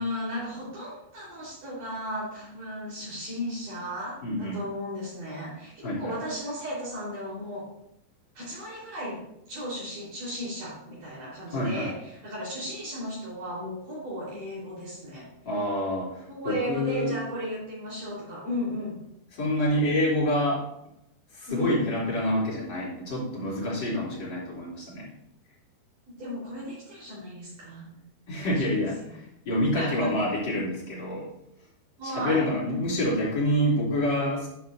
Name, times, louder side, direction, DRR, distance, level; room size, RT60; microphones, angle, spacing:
voice 1, 0.0-7.7 8.4-9.2 9.5-15.3 16.3-19.0 21.5-21.8 26.2-28.0 28.4-28.6 29.8-30.1 30.4-30.5 32.0-32.5, equal, 50° right, -8 dB, 5.6 m, -35 dB
voice 2, 4.2-4.6 5.8-6.1 11.5-11.9 15.4-17.1 19.3-20.6 21.3-25.1 28.3-31.3 32.0-34.5, left 1 dB, 25° left, -6 dB, 3.4 m, -27 dB
12.0 x 9.6 x 2.7 m, 0.78 s
omnidirectional pair, 5.2 m